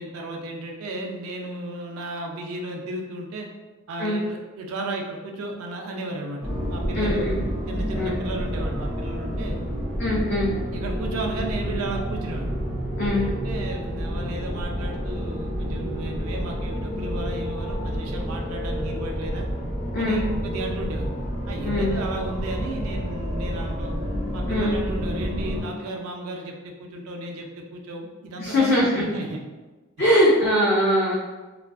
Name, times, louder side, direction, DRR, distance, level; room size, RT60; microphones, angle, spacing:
voice 1, 0.0-3.5 3.9-6.4 6.7-7.3 7.7-9.6 10.7-12.5 13.1-19.5 20.0-21.1 21.5-24.0 24.3-29.4, right 2 dB, 80° right, 2 dB, 0.4 m, -34 dB
sound 1, 6.4-25.6, equal, 5° left, 1.0 m, -29 dB
voice 2, 6.9-7.4 8.0-8.1 10.0-10.5 13.0-13.3 19.9-20.2 21.6-21.9 24.5-24.8 28.4-29.0 30.0-31.1, equal, 45° left, -7 dB, 0.4 m, -21 dB
2.4 x 2.3 x 2.2 m, 1.2 s
head